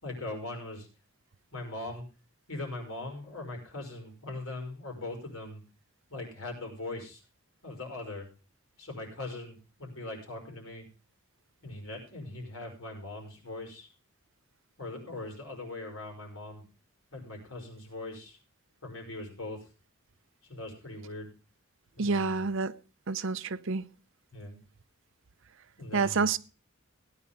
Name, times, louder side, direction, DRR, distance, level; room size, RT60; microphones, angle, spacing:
voice 1, 0.0-0.9 1.5-2.1 2.5-5.6 6.1-7.2 7.6-8.3 8.8-10.9 11.6-13.9 14.8-16.6 17.1-18.4 18.8-19.7 20.4-21.3 22.0-22.5 24.3-24.6 25.8-26.4, left 2 dB, 80° left, 5.5 m, -40 dB
voice 2, 22.0-22.8 23.1-23.8 25.9-26.4, right 4 dB, 65° right, 0.7 m, -28 dB
17.0 x 9.8 x 3.5 m
head